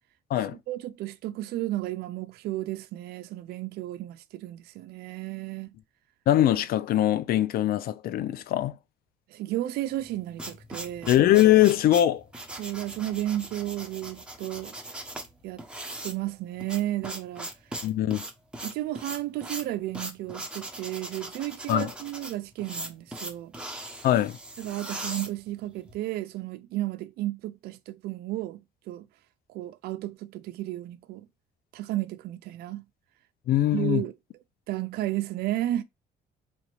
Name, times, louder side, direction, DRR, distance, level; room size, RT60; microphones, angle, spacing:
voice 1, 0.5-5.7 9.3-11.1 12.6-14.7 15.4-15.6 16.0-17.5 18.6-23.9 24.6-29.1 29.5-31.3 31.7-32.8 33.7-34.1 34.7-35.8, right 15 dB, 70° right, 0.4 m, -33 dB
voice 2, 6.3-8.7 11.1-12.2 17.8-18.2 21.7-21.9 24.0-24.4 33.5-34.0, left 13 dB, 60° left, 0.5 m, -22 dB
sound 1, 10.0-25.9, right 1 dB, 5° right, 0.9 m, -39 dB
4.2 x 2.9 x 3.0 m
cardioid pair, 110°, 17 cm